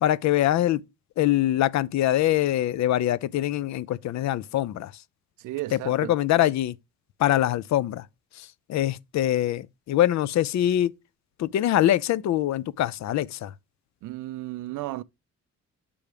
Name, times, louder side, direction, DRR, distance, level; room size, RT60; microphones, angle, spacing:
voice 1, 0.0-0.8 1.2-4.9 5.7-6.8 7.2-8.1 8.4-10.9 11.4-13.5, left 13 dB, 65° left, 0.5 m, -24 dB
voice 2, 5.4-6.1 14.0-15.0, right 17 dB, 85° right, 0.5 m, -34 dB
6.9 x 3.5 x 4.9 m
cardioid pair, 90°, 30 cm